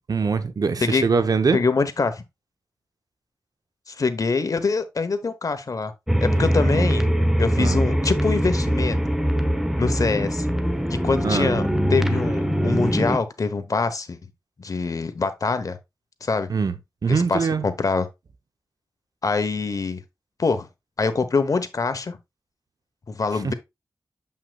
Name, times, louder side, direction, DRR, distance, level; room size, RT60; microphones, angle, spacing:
voice 1, 0.1-1.6 6.3-6.5 6.7-6.9 7.6-7.8 11.2-11.6 16.5-16.8 17.0-17.6 23.4-23.5, right 5 dB, 65° right, 0.8 m, -23 dB
voice 2, 1.5-2.2 3.9-5.9 6.2-7.0 7.4-9.0 9.8-10.5 10.9-14.2 14.6-15.8 16.2-16.5 17.1-18.1 19.2-20.0 20.4-20.7 21.0-22.2 23.1-23.5, left 4 dB, 55° left, 1.0 m, -24 dB
sound 1, 6.1-13.2, equal, 5° right, 1.0 m, -22 dB
7.6 x 5.6 x 2.4 m
wide cardioid pair, 70°, 7 cm